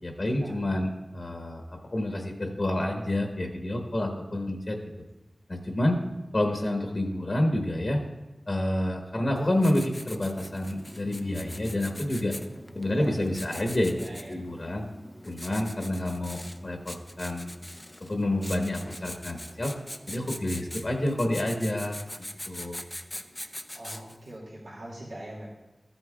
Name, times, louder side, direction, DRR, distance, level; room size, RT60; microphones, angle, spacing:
voice 1, 0.0-4.8 5.5-6.0 6.3-8.0 8.5-12.3 12.7-13.9 14.3-14.8 15.2-17.5 18.1-19.7 20.1-22.0 22.5-22.8, left 1 dB, 50° left, 2 dB, 1.1 m, -28 dB
Writing, 9.4-24.3, left 1 dB, 20° left, 0.6 m, -42 dB
voice 2, 13.8-14.3 23.7-25.5, right 1 dB, 80° right, -5 dB, 2.3 m, -40 dB
13.5 x 8.2 x 2.3 m, 1.0 s
wide cardioid pair, 65°, 0 cm